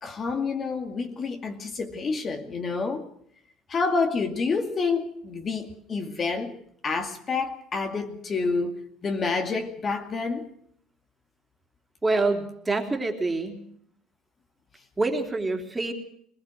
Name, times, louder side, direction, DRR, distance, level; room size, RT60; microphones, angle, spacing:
voice 1, 0.0-3.1 3.7-6.6 6.8-8.8 9.0-10.5, left 4 dB, 35° left, 2.4 m, -28 dB
voice 2, 12.0-13.6 15.0-15.9, right 3 dB, 15° right, 3.3 m, -26 dB
21.0 x 20.0 x 6.4 m
supercardioid pair, 95°, 0 cm